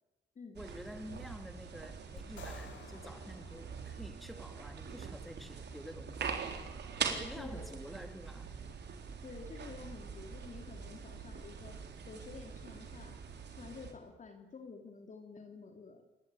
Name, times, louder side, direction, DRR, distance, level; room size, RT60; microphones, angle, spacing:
voice 1, 0.5-6.4 7.0-8.5, equal, ahead, 2.4 m, -49 dB
sound 1, 0.6-13.9, right 6 dB, 60° right, 3.8 m, -43 dB
sound 2, 2.2-4.5, left 7 dB, 70° left, 3.8 m, -54 dB
voice 2, 7.4-7.8 9.2-13.2 13.5-16.0, left 4 dB, 40° left, 3.1 m, -50 dB
25.5 x 20.5 x 9.1 m
cardioid pair, 90°, 20 cm